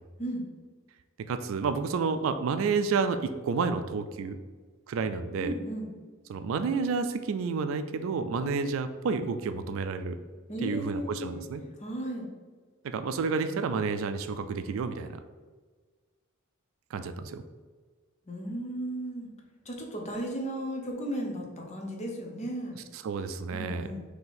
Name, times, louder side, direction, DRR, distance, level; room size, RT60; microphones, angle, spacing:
voice 1, 1.3-4.4 4.9-5.5 6.3-10.2 10.6-11.6 12.8-15.2 16.9-17.4 22.8-23.9, right 5 dB, 70° right, 10 dB, 0.3 m, -30 dB
voice 2, 5.4-5.9 8.4-8.5 10.5-12.3 18.3-19.3 19.6-22.8 23.5-24.0, right 1 dB, 35° left, 1 dB, 0.8 m, -35 dB
3.9 x 2.9 x 4.2 m, 1.4 s
head